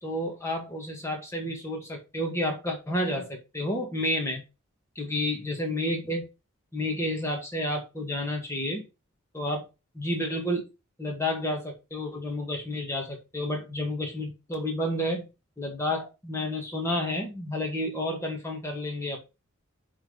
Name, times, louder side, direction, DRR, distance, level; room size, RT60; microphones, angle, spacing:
voice 1, 0.0-4.4 5.0-6.2 6.7-8.9 9.3-9.6 9.9-10.7 11.0-15.3 15.6-19.2, left 1 dB, 15° left, 1.9 m, -30 dB
10.5 x 3.8 x 4.0 m
head